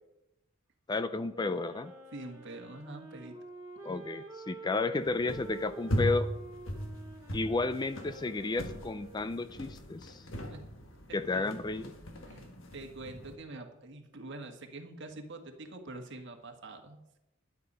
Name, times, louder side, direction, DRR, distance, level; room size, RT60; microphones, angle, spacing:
voice 1, 0.9-1.9 3.8-6.3 7.3-10.2 11.1-11.9, left 3 dB, 20° left, 13 dB, 0.4 m, -32 dB
Wind instrument woodwind instrument, 1.3-9.7, right 3 dB, 15° right, 2.5 m, -49 dB
voice 2, 2.1-3.4 3.8-4.0 10.5-10.6 11.1-11.5 12.3-17.2, right 2 dB, 55° right, 4 dB, 1.8 m, -45 dB
sound 1, 5.0-13.4, equal, 65° left, 1.6 m, -39 dB
12.0 x 9.6 x 5.5 m, 0.90 s
head